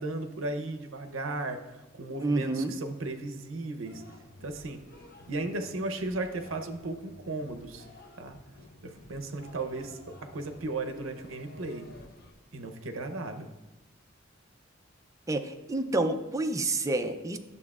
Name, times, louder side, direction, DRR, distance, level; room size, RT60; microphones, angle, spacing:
voice 1, 0.0-1.6 1.9-4.0 4.4-4.8 5.3-7.9 8.2-8.4 8.8-11.9 12.5-13.5, right 2 dB, 70° right, 6 dB, 0.7 m, -35 dB
voice 2, 2.2-2.7 15.3-17.4, right 2 dB, 15° right, 5 dB, 0.4 m, -29 dB
sound 1, 3.8-12.3, left 1 dB, 50° left, 0.8 m, -52 dB
11.0 x 6.9 x 2.4 m, 1.1 s
head